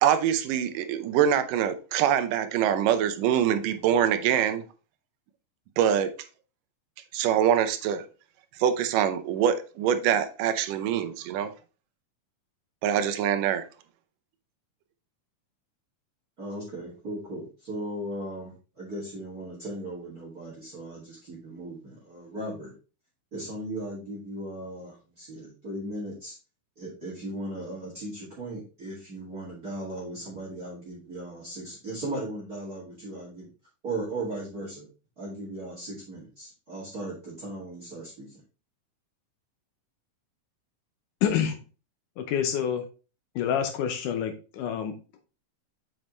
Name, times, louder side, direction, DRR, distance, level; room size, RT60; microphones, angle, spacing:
voice 1, 0.0-4.6 5.8-6.1 7.1-8.1 8.6-11.5 12.8-13.7, right 9 dB, 85° right, 2.3 m, -24 dB
voice 2, 16.4-22.7 23.3-26.3 26.8-33.5 33.8-34.9 35.2-38.4, right 1 dB, 30° right, 2.4 m, -37 dB
voice 3, 41.2-41.6 42.2-42.8 43.4-45.2, left 8 dB, 80° left, 2.3 m, -28 dB
7.4 x 5.2 x 3.1 m
omnidirectional pair, 3.7 m